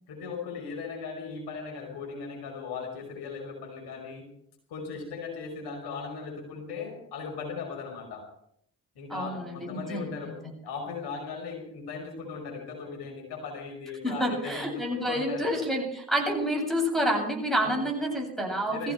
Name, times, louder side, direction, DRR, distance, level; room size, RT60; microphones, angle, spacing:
voice 1, 0.1-4.3 4.7-8.3 9.0-10.3 10.6-15.5 17.6-17.7 18.6-18.9, left 5 dB, 70° left, 1 dB, 5.4 m, -38 dB
voice 2, 9.1-10.3 14.0-18.9, equal, ahead, 1 dB, 7.9 m, -29 dB
20.5 x 15.5 x 4.5 m, 0.68 s
hypercardioid pair, 40°, 42 cm